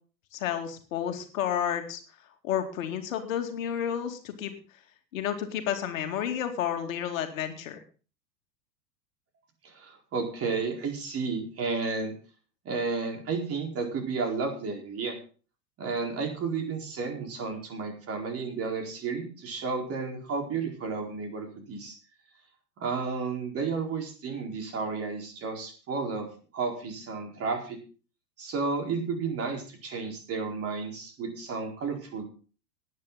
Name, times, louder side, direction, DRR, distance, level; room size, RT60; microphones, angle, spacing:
voice 1, 0.3-2.0 2.4-4.5 5.1-7.8, left 9 dB, 55° left, 5 dB, 2.4 m, -31 dB
voice 2, 9.6-12.1 12.6-15.2 15.8-22.0 22.8-26.3 26.5-27.8 28.4-32.2, right 4 dB, 30° right, 3 dB, 4.4 m, -32 dB
19.0 x 9.8 x 4.0 m, 0.38 s
figure-of-eight pair, 95°, 49 cm